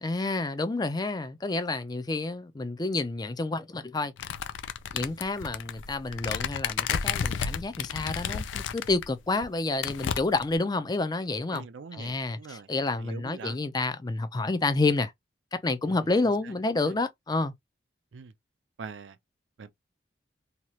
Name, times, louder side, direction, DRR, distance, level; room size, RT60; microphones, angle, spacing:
voice 1, 0.0-4.1 4.9-11.6 11.9-15.1 15.5-17.5, left 3 dB, 20° left, 0.4 m, -29 dB
sound 1, 4.2-9.1 9.4-9.5 9.8-10.6, left 7 dB, 90° left, 0.4 m, -32 dB
voice 2, 11.5-12.7 13.0-13.6 15.8-16.5 16.9-17.0 18.1-18.3 18.8-19.2 19.6-19.7, right 5 dB, 85° right, 0.5 m, -43 dB
2.8 x 2.4 x 3.0 m
head